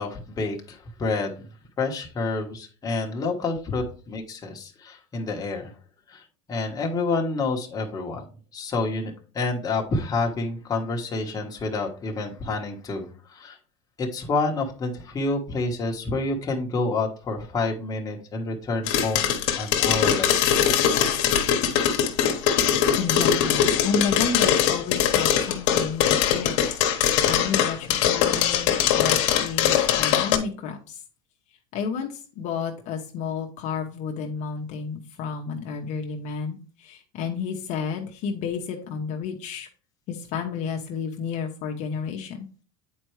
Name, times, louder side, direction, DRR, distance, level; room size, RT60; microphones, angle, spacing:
voice 1, 0.0-1.3 1.8-5.7 6.1-8.2 8.5-13.6 14.0-19.3 19.6-20.4, left 3 dB, 25° left, 1 dB, 1.3 m, -28 dB
sound 1, 18.9-30.4, left 9 dB, 70° left, 1.2 m, -21 dB
voice 2, 23.0-26.6 27.2-31.0 31.7-39.7 40.1-42.4, left 6 dB, 50° left, 1 dB, 0.9 m, -31 dB
8.6 x 4.5 x 3.2 m, 0.38 s
supercardioid pair, 135°, 15 cm